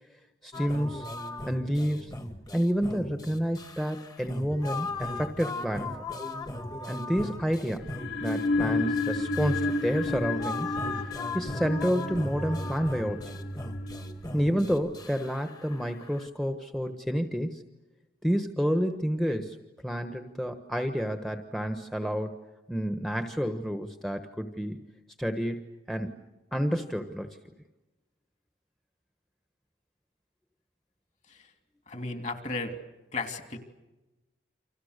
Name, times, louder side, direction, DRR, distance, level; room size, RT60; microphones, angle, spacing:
voice 1, 0.4-1.1 1.5-2.1 2.5-6.0 6.9-7.9 8.2-10.7 11.3-13.3 14.3-17.6 18.2-19.6 19.8-22.4 22.7-24.9 25.2-25.6 25.9-26.1 26.5-27.3, equal, ahead, 6 dB, 1.2 m, -29 dB
sound 1, 0.5-16.3, left 2 dB, 20° left, 1.6 m, -38 dB
sound 2, 7.8-14.7, left 2 dB, 75° left, 6.5 m, -32 dB
voice 2, 31.9-32.7 33.1-33.6, left 3 dB, 40° left, 6 dB, 2.9 m, -34 dB
30.0 x 26.0 x 6.7 m, 1.1 s
head